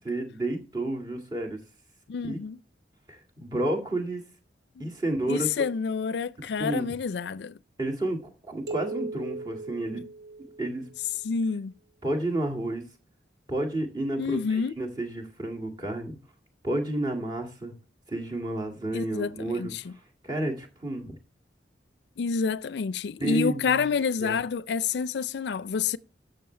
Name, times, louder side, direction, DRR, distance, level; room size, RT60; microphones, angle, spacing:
voice 1, 0.1-1.6 2.3-2.4 3.1-4.2 4.8-5.5 6.6-6.9 7.8-10.0 10.6-10.8 12.0-12.8 13.5-16.2 16.6-17.7 18.1-21.2 23.2-23.9 24.2-24.4, right 1 dB, 25° right, 2.1 m, -31 dB
voice 2, 2.1-2.6 4.8-4.9 5.3-7.6 11.2-11.7 14.2-14.8 18.9-19.9 22.2-26.0, left 5 dB, 75° left, 0.4 m, -28 dB
sound 1, 8.7-11.1, right 3 dB, 65° right, 2.9 m, -38 dB
12.5 x 6.9 x 3.3 m
head